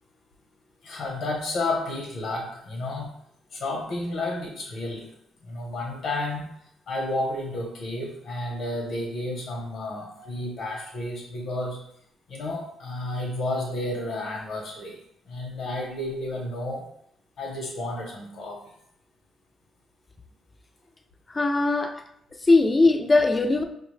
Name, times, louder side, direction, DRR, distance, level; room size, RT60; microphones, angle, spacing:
voice 1, 0.8-3.1 3.5-5.1 5.4-6.5 6.9-11.8 12.3-15.0 15.3-16.9 17.4-18.7, left 2 dB, 70° left, -1 dB, 0.9 m, -31 dB
voice 2, 21.3-22.0 22.4-23.6, left 3 dB, 25° left, 5 dB, 0.4 m, -20 dB
4.8 x 2.2 x 3.2 m, 0.73 s
cardioid pair, 90°, 0 cm